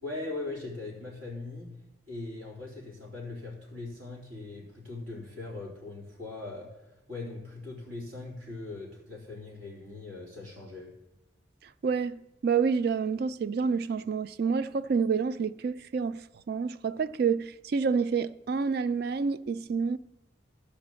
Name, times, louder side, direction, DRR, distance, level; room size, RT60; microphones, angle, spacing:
voice 1, 0.0-1.8 2.1-6.8 7.1-10.9, left 2 dB, 90° right, 3.5 m, -40 dB
voice 2, 11.8-20.0, right 5 dB, 50° right, 0.3 m, -28 dB
12.0 x 5.2 x 7.6 m
head